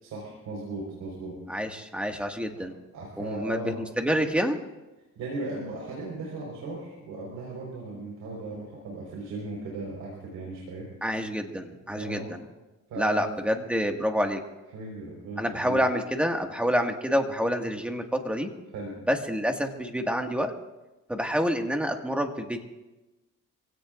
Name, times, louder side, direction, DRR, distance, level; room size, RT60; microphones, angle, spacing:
voice 1, 0.0-1.3 2.6-2.7 2.9-3.8 5.2-10.9 12.0-12.3 12.9-13.3 14.7-15.8 18.7-18.9, right 2 dB, 90° right, -2 dB, 4.7 m, -37 dB
voice 2, 1.5-2.7 3.2-4.6 11.0-12.4 13.0-14.4 15.4-18.5 19.1-20.5 21.1-22.6, equal, 5° right, 3 dB, 1.9 m, -27 dB
26.5 x 17.0 x 2.6 m, 1.1 s
cardioid pair, 90°, 30 cm